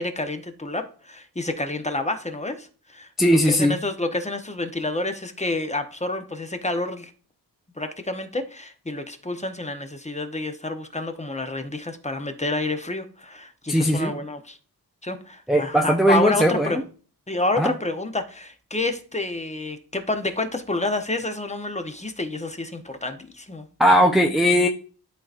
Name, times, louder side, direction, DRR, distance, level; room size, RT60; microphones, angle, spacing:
voice 1, 0.0-7.1 7.8-14.6 15.0-16.8 17.3-23.7, left 2 dB, 15° left, 6 dB, 1.0 m, -29 dB
voice 2, 3.2-3.8 13.7-14.1 15.5-16.8 17.6-17.7 23.8-24.7, equal, ahead, 1 dB, 0.7 m, -19 dB
11.5 x 3.9 x 2.5 m, 0.41 s
wide cardioid pair, 85°, 40 cm